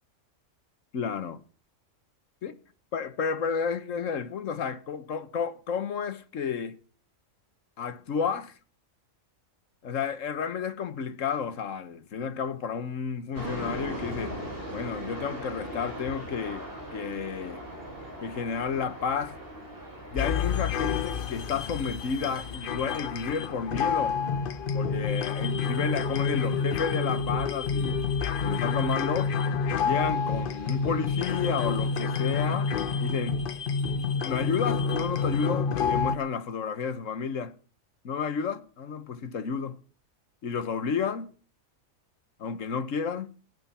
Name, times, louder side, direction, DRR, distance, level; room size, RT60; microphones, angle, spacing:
voice 1, 0.9-1.4 2.4-2.6 2.9-6.8 7.8-8.6 9.8-14.4 14.7-16.6 16.9-17.6 18.2-19.3 20.1-24.2 24.7-28.0 28.4-29.3 29.8-32.7 33.0-33.4 34.2-37.6 38.0-39.8 40.4-41.3 42.4-43.3, left 6 dB, 65° left, 1.5 m, -31 dB
sound 1, 13.3-31.9, right 1 dB, 40° right, 6.1 m, -42 dB
sound 2, 20.2-36.2, left 5 dB, 45° left, 0.8 m, -28 dB
17.0 x 11.0 x 4.3 m
omnidirectional pair, 1.4 m